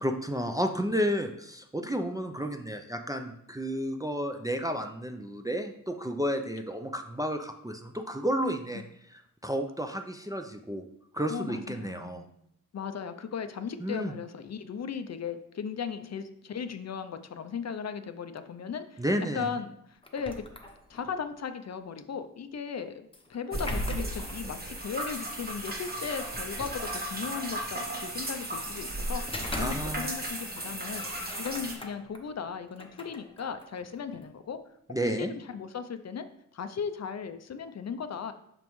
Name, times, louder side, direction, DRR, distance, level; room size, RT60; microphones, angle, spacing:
voice 1, 0.0-10.8 11.1-12.2 13.8-14.1 19.0-19.5 29.5-30.1 34.9-35.3, equal, 10° right, 4 dB, 0.4 m, -32 dB
voice 2, 11.3-12.3 12.7-19.0 19.3-19.8 20.1-20.4 20.9-29.2 29.6-31.1 31.4-34.6 35.0-36.3 36.5-38.3, left 6 dB, 55° left, 9 dB, 0.5 m, -37 dB
sound 1, 20.0-21.2 23.1-24.5 25.7-25.8 26.4-27.4 29.0-30.3 30.5-32.2 32.7-34.3, left 1 dB, 15° left, 0.7 m, -40 dB
sound 2, 23.5-31.7, right 1 dB, 30° right, 1.1 m, -36 dB
5.9 x 5.2 x 3.1 m, 0.75 s
wide cardioid pair, 105°, 33 cm